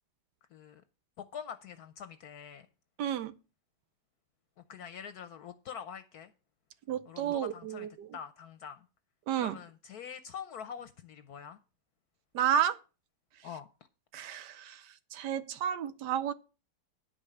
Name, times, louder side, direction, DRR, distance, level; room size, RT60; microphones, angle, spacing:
voice 1, 0.5-0.8 1.2-2.7 4.7-6.3 7.1-7.9 8.1-8.9 9.4-11.6 13.4-13.7, left 7 dB, 65° left, 1.1 m, -45 dB
voice 2, 3.0-3.3 6.9-8.2 9.3-9.6 12.3-12.8 14.1-16.3, right 10 dB, 75° right, 1.3 m, -32 dB
9.5 x 5.2 x 7.7 m
omnidirectional pair, 1.9 m